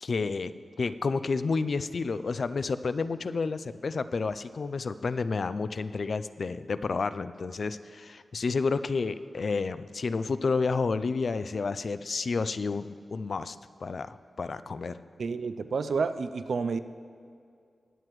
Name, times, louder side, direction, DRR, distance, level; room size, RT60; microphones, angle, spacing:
voice 1, 0.0-0.5 0.8-13.6 13.8-15.0, left 4 dB, 60° left, 13 dB, 0.4 m, -30 dB
voice 2, 15.2-16.8, right 5 dB, 80° right, 11 dB, 0.4 m, -30 dB
21.5 x 7.8 x 3.1 m, 2.3 s
wide cardioid pair, 100°, 0 cm